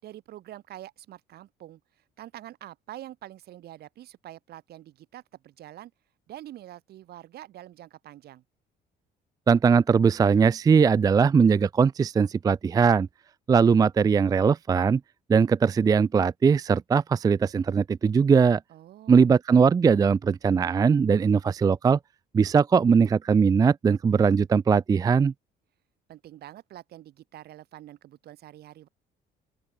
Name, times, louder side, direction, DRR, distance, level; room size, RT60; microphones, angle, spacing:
voice 1, 0.0-5.9 6.3-8.4 18.7-19.3 26.1-28.9, right 13 dB, 70° right, 6.7 m, -45 dB
voice 2, 9.5-13.1 13.5-15.0 15.3-18.6 19.1-22.0 22.3-25.3, right 6 dB, 20° right, 0.4 m, -20 dB
open air
cardioid pair, 110°, 17 cm